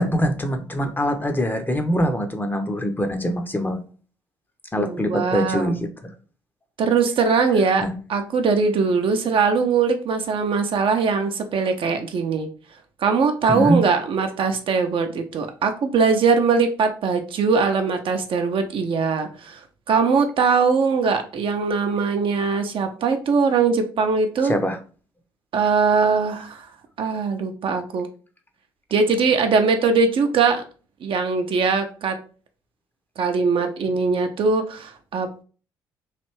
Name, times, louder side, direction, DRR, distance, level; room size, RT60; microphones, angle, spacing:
voice 1, 0.0-3.8 4.7-6.1 7.8-7.9 13.5-13.8 24.4-24.8, equal, 15° left, 6 dB, 0.6 m, -23 dB
voice 2, 4.8-5.7 6.8-7.8 8.1-12.5 13.0-19.6 19.9-24.5 25.5-26.7 27.0-28.1 28.9-30.6 31.0-32.2 33.2-35.4, right 5 dB, 50° right, 5 dB, 0.5 m, -21 dB
3.2 x 2.5 x 3.0 m, 0.37 s
hypercardioid pair, 45°, 11 cm